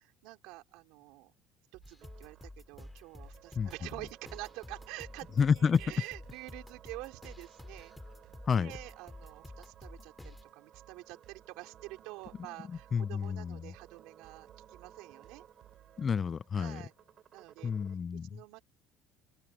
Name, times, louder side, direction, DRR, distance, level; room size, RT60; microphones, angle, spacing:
voice 1, 0.0-1.3 1.7-7.9 8.5-15.4 16.5-16.9 17.3-17.7 18.3-18.6, right 22 dB, 80° right, 4.2 m, -47 dB
sound 1, 1.7-16.0, right 14 dB, 60° right, 5.1 m, -61 dB
sound 2, 1.8-10.4, left 2 dB, 10° left, 3.9 m, -50 dB
sound 3, 2.0-18.0, right 9 dB, 45° right, 6.9 m, -59 dB
voice 2, 5.4-5.8 8.5-8.7 12.7-13.7 16.0-16.8 17.6-18.4, left 6 dB, 35° left, 0.4 m, -29 dB
supercardioid pair, 105°, 0 cm